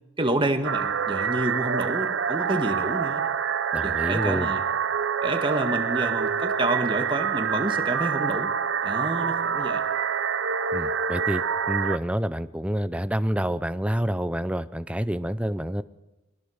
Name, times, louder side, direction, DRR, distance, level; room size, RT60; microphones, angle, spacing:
voice 1, 0.2-3.3 3.8-4.6 5.2-8.5 8.8-9.8, right 1 dB, 20° right, 6 dB, 1.8 m, -28 dB
sound 1, 0.6-12.0, right 7 dB, 55° right, 0.7 m, -26 dB
voice 2, 3.7-4.5 10.7-15.8, equal, 5° right, 13 dB, 0.6 m, -28 dB
22.0 x 20.5 x 6.5 m, 1.1 s
head